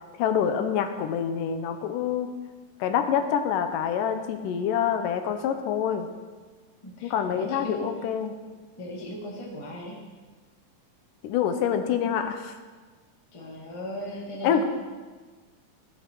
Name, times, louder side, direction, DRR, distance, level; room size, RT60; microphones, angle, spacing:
voice 1, 0.2-2.3 2.8-6.1 7.0-8.3 11.2-12.5 14.4-14.6, left 8 dB, 80° left, 7 dB, 2.3 m, -26 dB
voice 2, 6.8-8.0 8.8-10.0 13.3-14.6, left 1 dB, 30° left, -2 dB, 0.5 m, -37 dB
14.5 x 6.4 x 4.6 m, 1.4 s
omnidirectional pair, 3.8 m